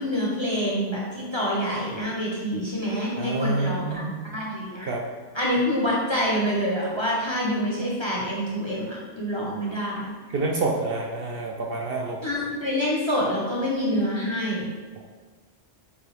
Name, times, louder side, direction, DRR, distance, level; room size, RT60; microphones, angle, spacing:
voice 1, 0.0-4.9 5.3-10.1 12.2-14.7, equal, 30° left, -5 dB, 0.6 m, -26 dB
voice 2, 3.2-4.4 4.8-5.0 10.3-12.2 15.0-15.1, right 2 dB, 60° right, -1 dB, 0.7 m, -28 dB
6.7 x 2.3 x 3.2 m, 1.4 s
omnidirectional pair, 1.2 m